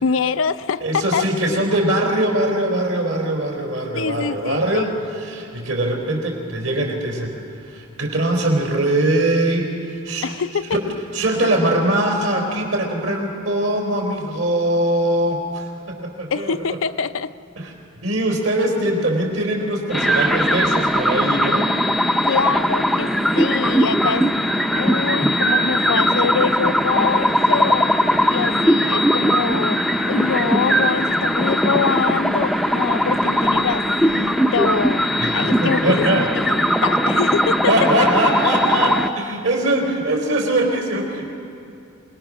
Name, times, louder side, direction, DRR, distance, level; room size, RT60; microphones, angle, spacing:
voice 1, 0.0-1.7 3.9-4.9 10.2-10.8 16.3-17.3 22.3-24.5 24.8-27.9 28.3-35.0 35.3-37.7, left 5 dB, 70° left, 13 dB, 0.5 m, -24 dB
voice 2, 0.8-4.9 5.2-7.4 7.6-10.3 10.7-10.8 11.1-16.5 17.6-17.7 18.0-21.7 35.2-36.2 37.7-41.3, right 1 dB, 70° right, 1 dB, 3.6 m, -21 dB
sound 1, 19.9-39.1, equal, ahead, 0.5 m, -19 dB
26.5 x 19.5 x 6.2 m, 2.6 s
head